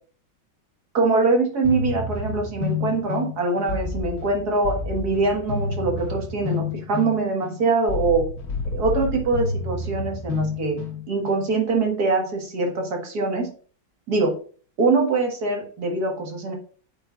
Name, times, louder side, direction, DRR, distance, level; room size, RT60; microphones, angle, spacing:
voice 1, 0.9-8.3 8.7-10.8 11.1-13.5 14.1-14.3 14.8-16.5, right 3 dB, 55° right, 2 dB, 2.1 m, -23 dB
sound 1, 1.6-11.4, left 4 dB, 55° left, 1.7 m, -30 dB
8.8 x 7.7 x 2.5 m, 0.43 s
omnidirectional pair, 2.1 m